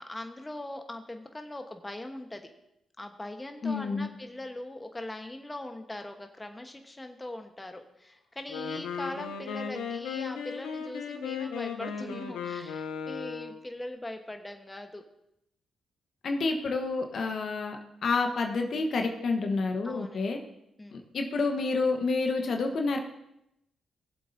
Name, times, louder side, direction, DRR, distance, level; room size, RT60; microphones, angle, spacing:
voice 1, 0.0-2.4 3.0-15.0 19.8-20.3 20.8-21.1, left 1 dB, 20° left, 5 dB, 1.2 m, -41 dB
voice 2, 3.6-4.1 16.2-17.8 18.0-20.4 20.9-23.0, left 3 dB, 60° left, 4 dB, 1.2 m, -29 dB
Wind instrument woodwind instrument, 8.4-13.7, left 6 dB, 80° left, 0.9 m, -36 dB
18.5 x 7.7 x 2.7 m, 0.83 s
hypercardioid pair, 45°, 0 cm